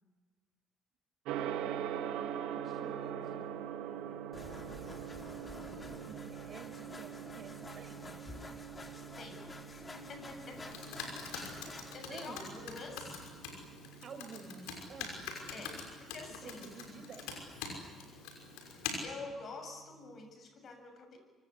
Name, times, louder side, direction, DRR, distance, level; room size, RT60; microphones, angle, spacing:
Gong, 1.2-20.2, right 10 dB, 75° right, 1.8 m, -44 dB
voice 1, 1.3-5.0 5.6-8.1 12.1-12.5 14.0-15.2 16.4-17.4, right 5 dB, 50° right, 7 dB, 5.7 m, -52 dB
sound 1, 4.3-12.0, left 2 dB, 30° left, 4.3 m, -49 dB
voice 2, 9.2-10.6 11.0-13.2 15.5-17.0 18.6-18.7 19.0-21.2, left 3 dB, 50° left, 7 dB, 7.5 m, -48 dB
Computer keyboard, 10.5-18.9, left 6 dB, 75° left, 5.9 m, -45 dB
27.0 x 25.0 x 8.3 m, 1.3 s
hypercardioid pair, 55°, 0 cm